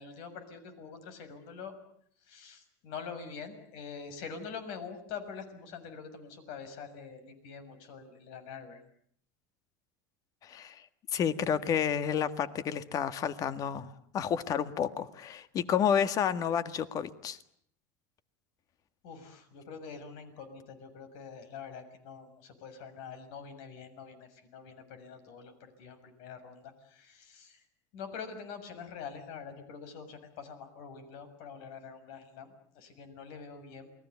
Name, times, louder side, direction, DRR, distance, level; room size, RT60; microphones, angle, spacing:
voice 1, 0.0-1.8 2.2-8.8 19.0-27.6 27.9-33.9, left 6 dB, 65° left, 10 dB, 6.8 m, -45 dB
voice 2, 10.4-10.8 11.1-17.4, left 8 dB, 40° left, 12 dB, 1.8 m, -30 dB
28.5 x 21.0 x 8.4 m, 0.65 s
supercardioid pair, 130°, 10 cm